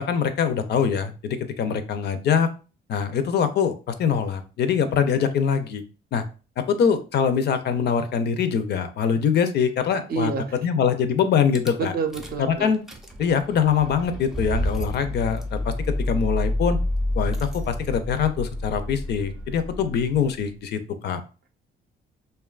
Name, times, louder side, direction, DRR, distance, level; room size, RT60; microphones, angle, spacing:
voice 1, 0.0-2.5 2.9-5.8 6.1-6.2 6.6-11.9 12.4-12.8 13.2-16.8 17.1-21.2, left 7 dB, 55° left, 10 dB, 0.4 m, -23 dB
voice 2, 10.1-10.6 11.8-12.7, right 5 dB, 50° right, 6 dB, 0.5 m, -28 dB
Rattle / Car / Engine starting, 11.6-11.7 12.1-12.5 12.7-20.5, left 1 dB, ahead, 0.5 m, -29 dB
2.8 x 2.2 x 2.3 m, 0.35 s
cardioid pair, 90°, 20 cm